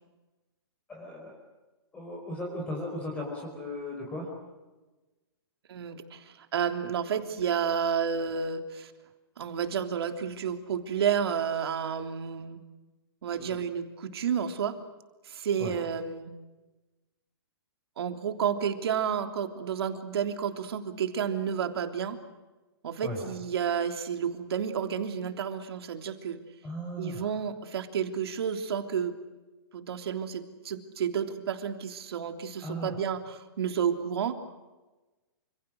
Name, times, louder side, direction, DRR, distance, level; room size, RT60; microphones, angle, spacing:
voice 1, 0.9-1.3 1.9-4.3 13.4-13.6 15.6-15.7 23.0-23.2 26.6-27.3 32.6-33.0, left 1 dB, 10° left, -1 dB, 5.1 m, -37 dB
voice 2, 5.7-8.9 9.4-12.6 13.2-14.8 15.2-16.3 18.0-22.2 22.8-26.4 27.0-29.2 29.7-34.4, right 7 dB, 70° right, 6 dB, 3.3 m, -31 dB
28.5 x 27.5 x 6.4 m, 1.1 s
hypercardioid pair, 160°, 14 cm